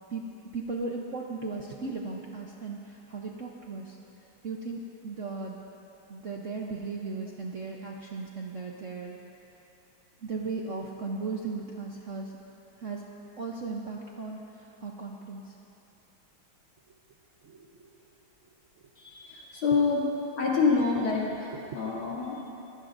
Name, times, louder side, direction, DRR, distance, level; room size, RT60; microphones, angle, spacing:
voice 1, 0.5-4.0 4.4-5.6 6.1-9.2 10.2-12.3 12.8-13.0 13.4-15.5 17.4-17.9 21.7-21.8, right 4 dB, 55° right, -1 dB, 0.9 m, -36 dB
voice 2, 19.0-20.0 20.4-22.5, left 4 dB, 75° left, -5 dB, 3.4 m, -27 dB
22.5 x 16.0 x 2.6 m, 2.9 s
omnidirectional pair, 2.3 m